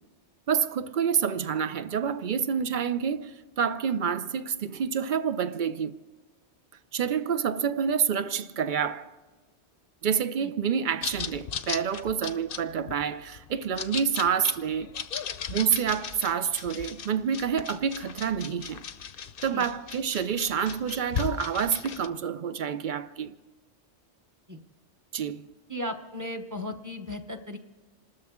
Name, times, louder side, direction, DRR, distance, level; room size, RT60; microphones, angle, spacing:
voice 1, 0.5-6.0 6.9-9.1 10.0-14.9 15.5-18.8 19.4-23.3 25.1-25.5, right 7 dB, 55° right, 0.6 m, -28 dB
sound 1, 11.0-22.1, left 7 dB, 55° left, 0.8 m, -37 dB
voice 2, 25.7-27.6, left 1 dB, 15° right, 0.9 m, -36 dB
28.0 x 13.0 x 3.6 m
omnidirectional pair, 1.2 m